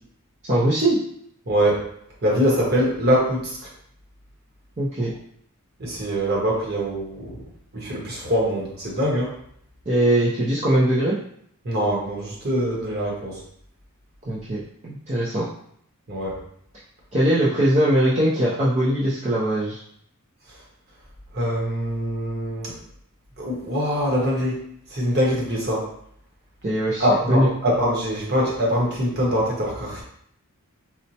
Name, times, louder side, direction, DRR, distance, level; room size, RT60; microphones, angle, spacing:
voice 1, 0.5-1.0 4.8-5.1 9.9-11.2 14.3-14.6 14.8-15.5 17.1-19.8 26.6-27.5, right 1 dB, 30° right, -8 dB, 0.5 m, -21 dB
voice 2, 1.5-1.8 2.2-3.6 5.8-7.4 7.7-9.3 11.6-13.4 16.1-16.3 21.3-22.7 23.4-24.6 24.9-25.9 27.0-30.0, equal, 45° right, -3 dB, 0.9 m, -23 dB
4.2 x 2.0 x 2.7 m, 0.68 s
head